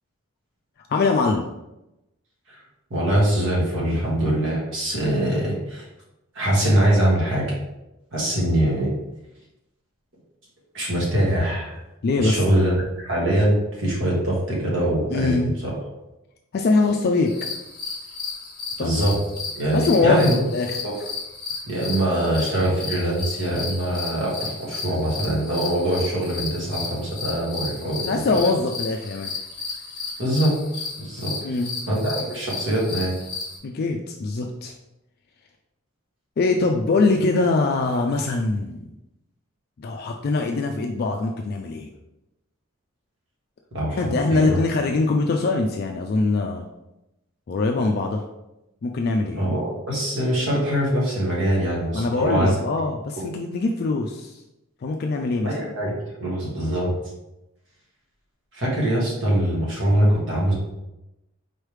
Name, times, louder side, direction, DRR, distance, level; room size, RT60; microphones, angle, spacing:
voice 1, 0.9-1.5 12.0-12.7 15.1-15.5 16.5-17.3 18.8-18.9 19.7-20.8 28.1-29.3 31.4-31.7 33.6-34.7 36.4-38.8 39.8-41.9 43.9-46.6 47.5-48.2 48.8-49.4 51.9-54.4 54.8-55.6, left 3 dB, 45° left, 2 dB, 0.3 m, -23 dB
voice 2, 2.9-5.8 6.3-7.5 8.1-8.9 10.7-11.8 12.2-12.7 13.0-15.7 18.8-19.2 19.5-20.4 20.8-20.9 21.7-28.4 30.2-30.5 31.0-31.3 31.9-33.2 43.7-44.0 44.3-44.6 49.3-52.5 53.2-53.3 55.4-56.9 58.5-60.5, right 1 dB, 60° right, -4 dB, 1.5 m, -23 dB
sound 1, 17.2-33.6, left 4 dB, 20° left, 1.0 m, -34 dB
4.4 x 3.2 x 3.2 m, 0.93 s
head